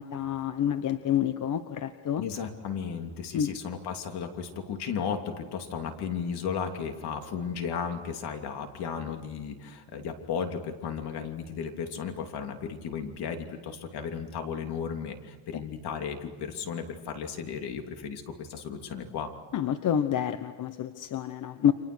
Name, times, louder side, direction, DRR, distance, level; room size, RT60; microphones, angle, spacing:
voice 1, 0.0-2.2 3.3-3.5 19.5-21.7, left 9 dB, 45° left, 10 dB, 1.0 m, -28 dB
voice 2, 2.2-19.3, left 6 dB, 65° left, 4 dB, 3.1 m, -35 dB
29.5 x 26.0 x 6.3 m, 1.4 s
cardioid pair, 145°, 42 cm